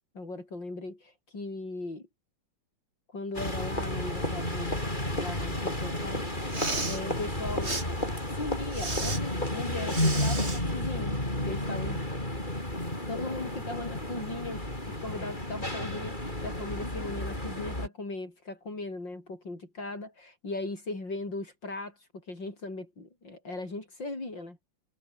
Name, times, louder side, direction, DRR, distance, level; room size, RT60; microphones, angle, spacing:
voice 1, 0.2-2.1 3.1-4.8 5.1-7.8 8.3-11.2 11.4-12.0 13.1-24.6, left 2 dB, 70° left, 7.1 m, -38 dB
sound 1, 3.3-17.9, left 1 dB, 25° left, 7.8 m, -32 dB
Respiratory sounds, 6.4-7.0 7.6-7.8 8.7-9.2 9.9-10.6, right 2 dB, 35° right, 4.2 m, -33 dB
omnidirectional pair, 2.1 m